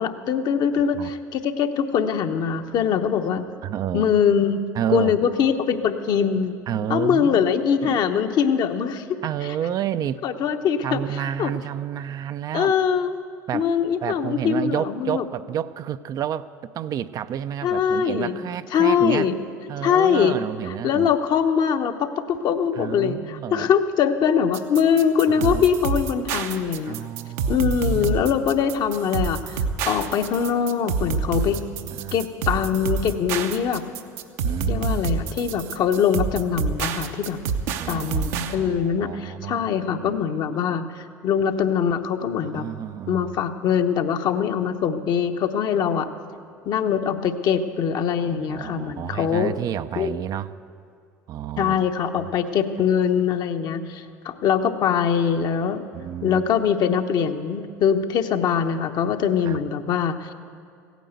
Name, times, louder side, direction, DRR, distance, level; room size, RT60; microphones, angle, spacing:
voice 1, 0.0-3.5 3.9-6.6 6.9-9.2 10.2-11.0 11.4-11.5 12.5-13.1 13.5-15.2 17.6-18.4 18.7-19.3 19.8-20.4 20.8-27.1 27.5-31.6 32.1-33.9 34.7-37.4 37.9-42.7 43.1-46.1 46.6-49.5 50.0-50.1 51.6-55.9 56.2-60.3, left 7 dB, 50° left, 7 dB, 0.9 m, -22 dB
voice 2, 3.6-4.1 4.7-5.2 6.7-7.5 7.8-8.0 9.2-10.2 10.8-12.7 13.5-13.7 14.0-19.3 19.7-21.1 22.7-23.7 25.3-25.6 26.9-28.2 31.4-32.2 34.4-35.0 37.8-40.2 42.5-43.3 48.2-50.6 51.3-51.9 52.2-52.3 55.9-56.4 59.4-59.6, right 10 dB, 45° right, 12 dB, 0.4 m, -30 dB
sound 1, 24.5-38.5, right 5 dB, 70° right, 0.8 m, -27 dB
16.0 x 9.3 x 8.1 m, 2.3 s
hypercardioid pair, 75°, 9 cm